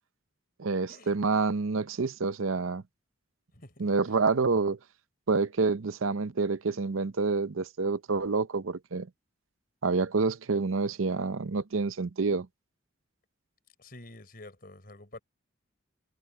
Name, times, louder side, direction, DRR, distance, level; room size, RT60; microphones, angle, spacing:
voice 1, 0.6-2.8 3.8-4.8 5.3-9.1 9.8-12.5, right 4 dB, 80° right, 0.7 m, -28 dB
voice 2, 3.5-3.8 13.8-15.2, left 2 dB, 45° left, 5.4 m, -48 dB
head